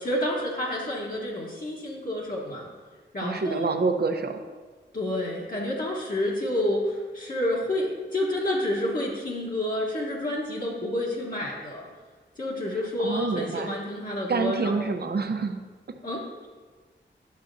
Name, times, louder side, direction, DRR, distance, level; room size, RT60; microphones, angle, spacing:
voice 1, 0.0-2.7 3.1-3.7 4.9-11.9 12.4-14.9 16.0-16.5, left 1 dB, 45° left, -5 dB, 1.1 m, -29 dB
voice 2, 3.2-4.4 12.7-13.8 14.3-16.0, right 4 dB, 55° right, 6 dB, 0.6 m, -28 dB
10.5 x 7.0 x 2.6 m, 1.4 s
wide cardioid pair, 105°, 20 cm